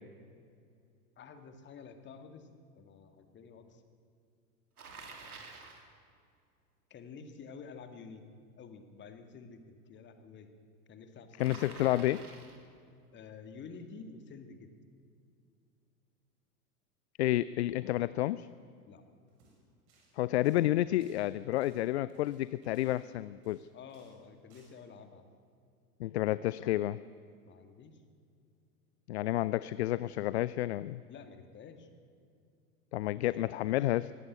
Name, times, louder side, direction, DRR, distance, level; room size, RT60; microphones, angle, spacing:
voice 1, 1.2-3.8 6.9-8.2 8.6-10.5 10.9-12.1 13.1-14.7 18.9-19.0 23.7-25.2 27.4-28.0 31.1-31.9 33.2-33.8, left 5 dB, 25° left, 7 dB, 2.1 m, -50 dB
Bicycle, 4.8-5.9 11.4-12.7, right 4 dB, 70° right, 3.3 m, -49 dB
voice 2, 11.4-12.2 17.2-18.5 20.2-23.7 26.0-27.0 29.1-31.0 32.9-34.1, left 15 dB, 45° left, 18 dB, 0.5 m, -30 dB
sound 1, 19.3-19.6 19.9-20.1 20.4-23.6 23.9-24.2 24.5-24.7, right 3 dB, 45° right, 7.6 m, -67 dB
23.0 x 17.5 x 8.1 m, 2.4 s
figure-of-eight pair, 90°, 46 cm